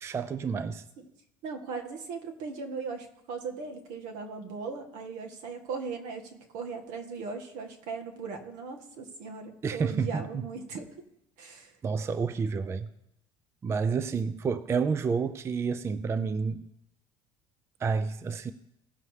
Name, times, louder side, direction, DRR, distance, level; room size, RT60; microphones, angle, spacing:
voice 1, 0.0-0.8 9.6-10.4 11.8-12.9 13.6-16.7 17.8-18.5, right 5 dB, 20° right, 0.3 m, -29 dB
voice 2, 1.4-10.8 11.4-11.7, right 5 dB, 70° right, 1.7 m, -38 dB
17.5 x 6.8 x 3.3 m
cardioid pair, 135°, 13 cm